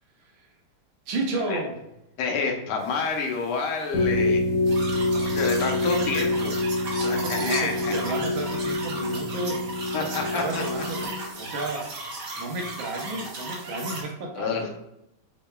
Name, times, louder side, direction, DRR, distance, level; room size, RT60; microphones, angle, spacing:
voice 1, 1.1-1.8 7.0-9.6 10.3-11.0 11.4-11.9 12.4-14.7, right 2 dB, 70° right, 1 dB, 1.5 m, -32 dB
voice 2, 2.2-4.4 5.1-6.5 7.3-7.9 9.9-10.6 14.3-14.7, left 4 dB, 85° left, 2 dB, 1.6 m, -28 dB
sound 1, 3.9-11.4, left 2 dB, 60° left, 1.0 m, -26 dB
sound 2, 4.6-14.0, right 2 dB, 55° right, 1.6 m, -36 dB
6.7 x 3.0 x 2.3 m, 0.84 s
omnidirectional pair, 2.4 m